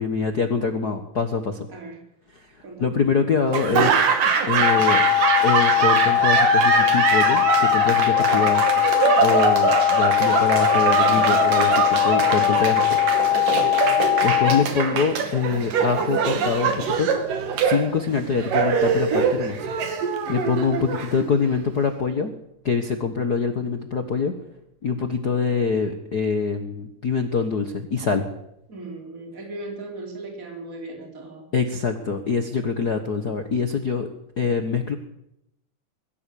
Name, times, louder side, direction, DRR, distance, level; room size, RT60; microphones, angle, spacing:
voice 1, 0.0-1.7 2.4-2.5 2.8-4.0 4.5-5.0 5.4-8.7 9.2-13.0 14.2-17.1 17.6-19.6 19.9-20.0 20.3-22.3 22.6-24.3 24.8-28.2 31.5-34.1 34.4-34.9, left 5 dB, 90° left, 7 dB, 0.8 m, -24 dB
voice 2, 1.7-2.1 2.6-3.0 28.7-31.5, right 2 dB, 20° right, 1 dB, 4.9 m, -37 dB
Laughter / Applause, 3.5-21.6, right 5 dB, 65° right, 3.8 m, -23 dB
sound 1, 4.6-14.6, left 15 dB, 70° left, 2.3 m, -20 dB
22.5 x 16.0 x 8.7 m, 0.81 s
omnidirectional pair, 4.1 m